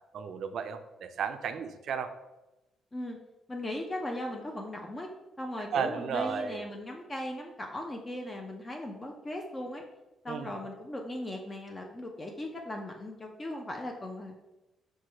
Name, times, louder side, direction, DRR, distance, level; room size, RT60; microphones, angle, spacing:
voice 1, 0.1-2.1 5.7-6.6 10.3-10.5, right 7 dB, 70° right, 9 dB, 0.3 m, -33 dB
voice 2, 3.5-5.1 5.4-9.8 10.2-14.3, left 1 dB, 25° left, 1 dB, 0.5 m, -38 dB
4.6 x 2.2 x 4.3 m, 1.0 s
cardioid pair, 90°, 0 cm